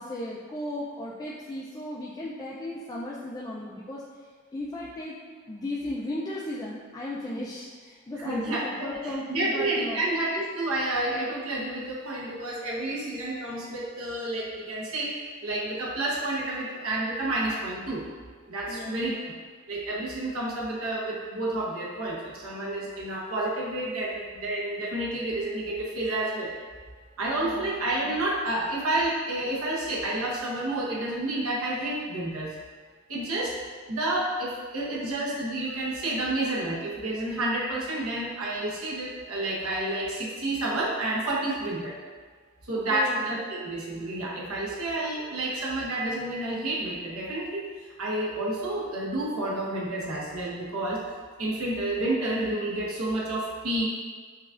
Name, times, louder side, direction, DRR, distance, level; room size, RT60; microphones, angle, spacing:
voice 1, 0.0-4.0 4.5-5.2 5.5-10.1 18.7-19.3 27.4-27.7 42.7-43.2, left 1 dB, 20° left, -6 dB, 0.3 m, -36 dB
voice 2, 8.2-8.9 9.3-15.1 15.4-18.0 18.5-19.3 19.7-26.5 27.2-32.5 33.1-33.6 33.9-42.0 42.7-47.7 48.0-51.0 51.4-53.9, right 1 dB, 80° right, -5 dB, 0.9 m, -30 dB
6.0 x 2.3 x 2.4 m, 1.5 s
head